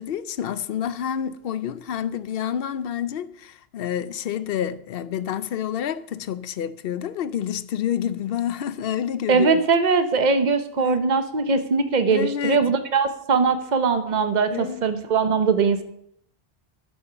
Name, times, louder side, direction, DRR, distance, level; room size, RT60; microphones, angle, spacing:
voice 1, 0.0-9.6 10.8-11.0 12.1-12.6 14.5-14.8, left 9 dB, 65° left, 0.8 m, -28 dB
voice 2, 9.3-15.8, right 5 dB, 45° right, 1.0 m, -21 dB
11.5 x 5.7 x 6.8 m
omnidirectional pair, 1.1 m